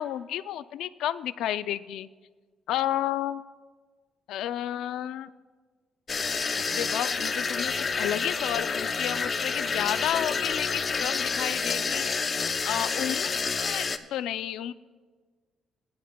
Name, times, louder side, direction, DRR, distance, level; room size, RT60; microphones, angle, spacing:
voice 1, 0.0-2.1 2.7-3.4 4.3-5.3 6.6-12.4 12.6-13.4 13.6-14.7, left 11 dB, 85° left, 15 dB, 0.4 m, -31 dB
sound 1, 6.1-14.0, left 5 dB, 40° left, 0.7 m, -29 dB
20.5 x 11.0 x 2.3 m, 1.4 s
cardioid pair, 90°, 0 cm